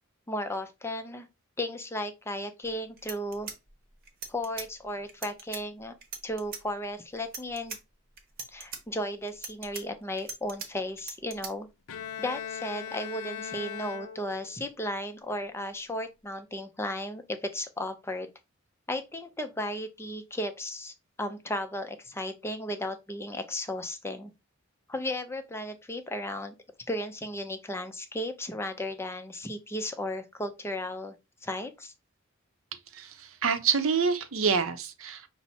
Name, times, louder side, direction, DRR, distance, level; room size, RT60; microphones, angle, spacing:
voice 1, 0.3-1.3 1.6-3.5 4.3-5.9 6.2-7.8 8.5-11.7 12.2-18.3 18.9-24.3 24.9-26.5 26.9-31.2 31.4-31.9, left 1 dB, 10° left, 0.4 m, -35 dB
sound 1, 2.6-2.7 3.0-4.7 5.1-5.6 6.0-6.6 7.2-7.8 8.2-8.8 9.3-10.7 11.0-11.5, right 5 dB, 45° right, 0.9 m, -40 dB
Bowed string instrument, 11.9-14.6, left 7 dB, 85° left, 0.6 m, -39 dB
voice 2, 32.9-35.3, right 6 dB, 70° right, 0.6 m, -27 dB
5.7 x 2.0 x 4.1 m
head